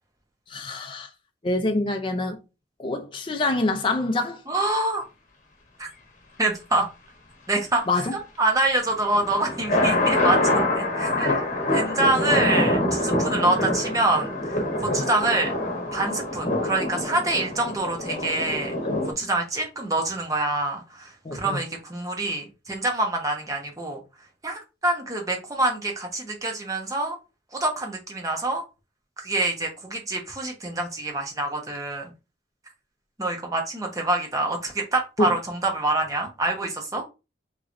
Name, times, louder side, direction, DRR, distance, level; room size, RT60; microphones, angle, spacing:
voice 1, 0.5-1.1 1.4-2.4 2.8-4.4 7.9-8.1 13.4-13.5 14.9-15.1 18.8-19.3 21.2-21.6 35.2-35.4, left 2 dB, 30° left, 0.4 m, -26 dB
voice 2, 4.5-5.0 5.8-5.9 6.4-6.9 7.5-8.0 8.4-11.4 11.7-15.5 15.9-18.7 19.2-24.0 24.4-27.2 27.5-28.6 29.2-32.1 33.2-37.0, right 2 dB, 20° right, 0.8 m, -26 dB
sound 1, 8.9-19.1, left 1 dB, 45° left, 1.0 m, -25 dB
3.8 x 3.0 x 2.5 m
head